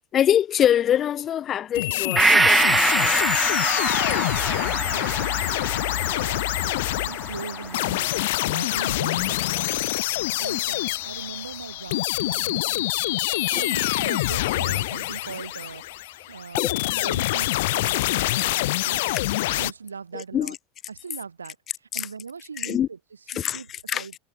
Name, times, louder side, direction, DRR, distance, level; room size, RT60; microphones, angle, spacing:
voice 1, 0.1-3.5 13.5-13.6 16.6-16.7 20.1-20.6 21.9-22.1 22.6-22.9 23.3-23.6 23.9-24.1, left 10 dB, 35° left, 1.0 m, -24 dB
sound 1, 1.7-19.7, left 18 dB, 65° left, 0.4 m, -25 dB
Gong, 2.2-9.8 10.2-10.3, right 3 dB, 15° right, 0.4 m, -25 dB
voice 2, 4.7-10.0 10.3-12.9 13.5-15.8 16.3-19.2 19.5-20.6 20.9-23.0 23.3-24.1, right 5 dB, 90° right, 0.9 m, -40 dB
sound 2, 7.5-16.1, right 25 dB, 55° right, 6.8 m, -60 dB
hypercardioid pair, 85°, 0 cm